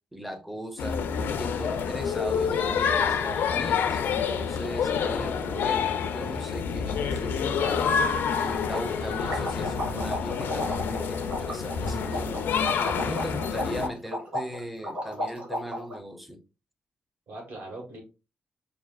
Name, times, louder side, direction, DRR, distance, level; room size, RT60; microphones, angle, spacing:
voice 1, 0.1-1.0 1.4-7.8 8.4-12.5 12.8-16.4, equal, ahead, 0.5 m, -38 dB
sound 1, 0.8-13.9, left 6 dB, 90° left, 0.5 m, -28 dB
sound 2, 8.0-8.1 8.3-8.4 8.7-16.0, equal, 40° right, 1.8 m, -34 dB
voice 2, 9.0-9.4 17.3-18.0, right 2 dB, 70° right, 1.5 m, -41 dB
5.9 x 2.7 x 2.3 m
wide cardioid pair, 160°, 3 cm